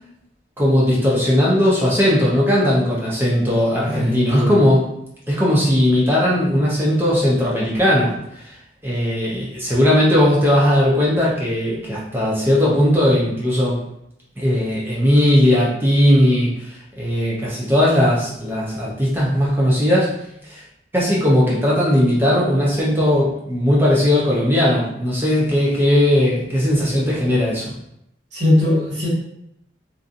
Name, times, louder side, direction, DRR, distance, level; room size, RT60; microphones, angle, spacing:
voice 1, 0.6-4.8 5.3-8.5 8.8-13.8 14.4-20.1 20.4-20.6 20.9-27.7, left 1 dB, 10° right, -6 dB, 0.4 m, -18 dB
voice 2, 3.8-4.6 28.3-29.1, left 1 dB, 70° right, -7 dB, 1.4 m, -19 dB
2.6 x 2.5 x 2.4 m, 0.79 s
head